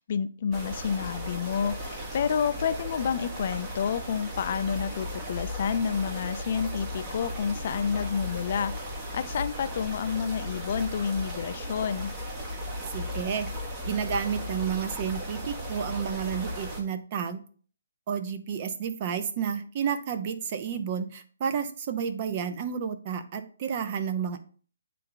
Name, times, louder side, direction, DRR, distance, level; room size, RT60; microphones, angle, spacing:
voice 1, 0.0-8.8 9.1-12.1, left 7 dB, 45° left, 12 dB, 0.4 m, -29 dB
sound 1, 0.5-16.8, equal, 20° right, 1.2 m, -36 dB
voice 2, 12.9-13.5 13.9-17.4 18.1-24.4, right 7 dB, 35° right, 8 dB, 0.7 m, -31 dB
8.9 x 3.3 x 3.9 m, 0.42 s
hypercardioid pair, 155°, 0 cm